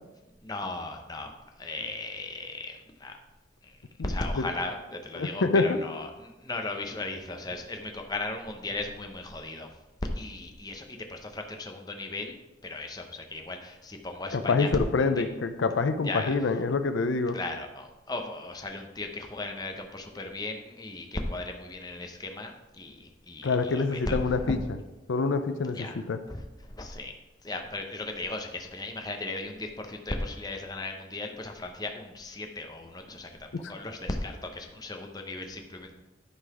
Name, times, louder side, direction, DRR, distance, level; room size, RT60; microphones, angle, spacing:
voice 1, 0.4-3.2 3.6-3.8 4.0-9.7 10.1-12.4 12.6-15.2 16.0-16.3 17.3-24.6 25.7-26.0 26.3-27.1 27.4-35.9, left 2 dB, 20° left, 4 dB, 0.7 m, -36 dB
voice 2, 5.2-5.8 14.3-17.4 23.4-24.6 25.1-25.8 26.1-26.2 33.6-33.7, left 4 dB, 80° left, 9 dB, 0.5 m, -26 dB
11.0 x 3.9 x 4.8 m, 1.1 s
head